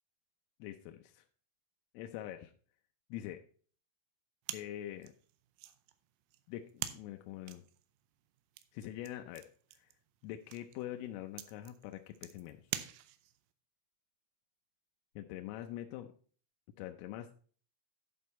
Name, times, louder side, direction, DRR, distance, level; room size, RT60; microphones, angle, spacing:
voice 1, 0.6-1.2 1.9-2.5 3.1-3.4 4.5-5.1 6.5-7.6 8.7-9.5 9.7-9.9 10.2-12.7 15.2-16.1 16.8-17.3, left 12 dB, 85° left, 5 dB, 3.2 m, -44 dB
sound 1, 4.4-13.5, right 13 dB, 80° right, 3.0 m, -47 dB
11.0 x 5.3 x 4.1 m, 0.43 s
omnidirectional pair, 5.9 m